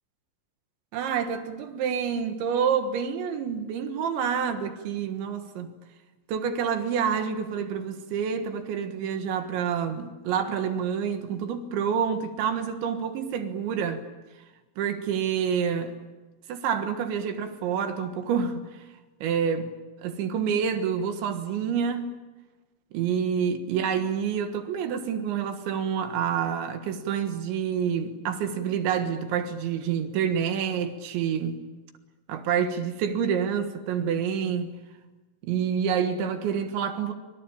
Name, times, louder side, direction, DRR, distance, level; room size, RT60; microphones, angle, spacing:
voice 1, 0.9-5.7 6.3-14.0 14.8-16.0 16.5-18.7 19.2-19.7 20.0-22.1 22.9-31.6 32.3-34.7 35.4-37.1, right 7 dB, 70° right, 3.6 m, -28 dB
26.0 x 23.5 x 8.8 m
omnidirectional pair, 6.0 m